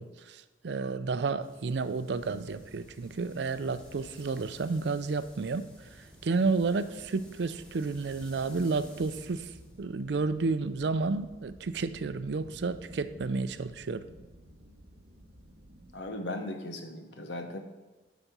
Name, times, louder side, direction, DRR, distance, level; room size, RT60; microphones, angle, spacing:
voice 1, 0.0-5.7 6.2-9.5 9.8-14.1, right 4 dB, 75° right, 13 dB, 0.4 m, -31 dB
sound 1, 1.4-9.8, equal, 5° left, 1.1 m, -55 dB
sound 2, 2.1-16.0, right 1 dB, 60° right, 0.9 m, -54 dB
voice 2, 15.9-17.6, left 1 dB, 90° left, 5 dB, 1.0 m, -37 dB
8.9 x 4.1 x 6.1 m, 1.2 s
head